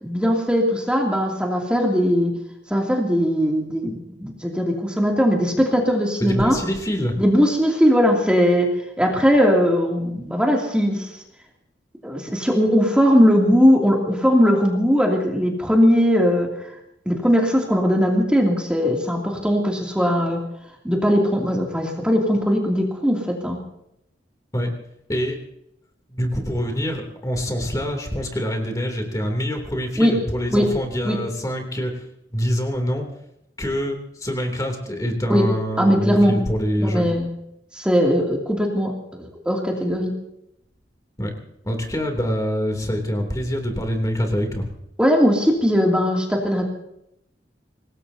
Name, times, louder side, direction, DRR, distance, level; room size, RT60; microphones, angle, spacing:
voice 1, 0.0-2.3 2.7-6.6 7.2-8.7 9.0-11.1 12.0-16.5 17.1-20.4 20.8-23.6 30.0-30.1 30.5-30.7 31.0-31.2 35.3-35.4 35.8-36.4 36.8-37.3 37.7-40.1 45.0-46.7, equal, 5° right, -1 dB, 2.7 m, -19 dB
voice 2, 6.2-7.1 24.5-24.7 25.1-25.4 26.1-32.0 32.3-33.0 33.6-37.1 41.2-41.3 41.6-44.6, equal, 20° left, 3 dB, 3.0 m, -25 dB
26.0 x 19.5 x 2.8 m, 0.80 s
head